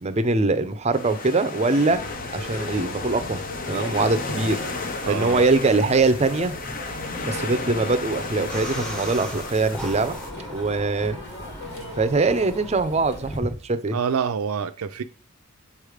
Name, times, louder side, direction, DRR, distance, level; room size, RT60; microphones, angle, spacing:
voice 1, 0.0-2.0 2.3-3.4 3.7-4.6 5.1-6.5 7.2-10.2 10.5-11.2 12.0-14.0, right 3 dB, 30° right, 0.5 m, -22 dB
sound 1, 0.9-10.3, left 3 dB, 40° left, 0.7 m, -34 dB
sound 2, 1.9-13.4, left 1 dB, 55° left, 1.7 m, -37 dB
voice 2, 5.0-5.4 13.9-15.0, right 6 dB, 85° right, 0.5 m, -27 dB
sound 3, 8.5-13.6, right 1 dB, 5° left, 0.9 m, -37 dB
7.1 x 3.3 x 4.9 m
head